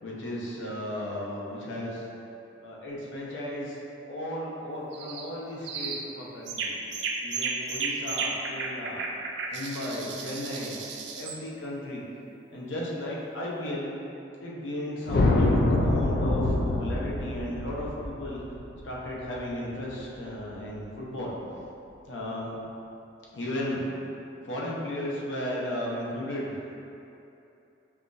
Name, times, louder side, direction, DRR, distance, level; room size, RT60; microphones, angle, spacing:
voice 1, 0.0-2.0 2.6-3.8 4.1-6.7 7.2-9.1 9.5-10.8 11.1-12.0 12.5-13.9 14.4-18.4 18.8-21.3 22.1-22.6 23.3-23.8 24.4-26.7, left 1 dB, 85° left, -5 dB, 0.7 m, -35 dB
sound 1, 4.9-5.3 5.6-6.1 6.5-11.4, right 4 dB, 65° right, 0.3 m, -33 dB
sound 2, 15.1-19.5, left 2 dB, 50° left, 0.3 m, -25 dB
5.6 x 2.3 x 2.6 m, 2.8 s
head